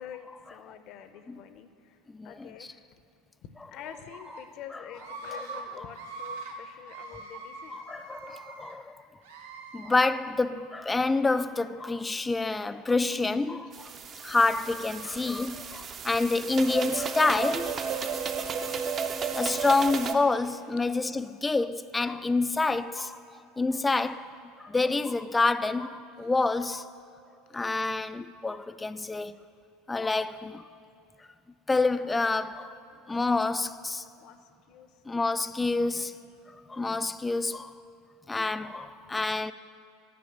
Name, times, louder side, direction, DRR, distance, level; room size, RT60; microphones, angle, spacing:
voice 1, 0.0-2.0 2.2-2.8 3.4-7.8 13.8-14.3 18.3-18.7 32.0-32.4 34.2-34.4 34.7-35.5 36.0-36.1, left 9 dB, 55° left, 0.6 m, -47 dB
voice 2, 2.1-2.5 7.7-9.0 9.7-13.9 14.2-18.0 19.4-23.2 23.6-24.3 24.6-26.9 27.5-29.4 29.9-30.7 31.7-32.7 33.1-34.0 35.1-36.2 36.7-37.7 38.3-39.5, left 3 dB, 15° left, 0.3 m, -28 dB
Screaming, 3.8-4.4 5.0-5.6 5.9-6.5 6.9-8.7 9.2-9.9, right 3 dB, 90° right, 1.0 m, -42 dB
sound 1, 13.7-20.1, right 6 dB, 35° right, 0.6 m, -33 dB
9.5 x 5.0 x 7.2 m
supercardioid pair, 105°, 0 cm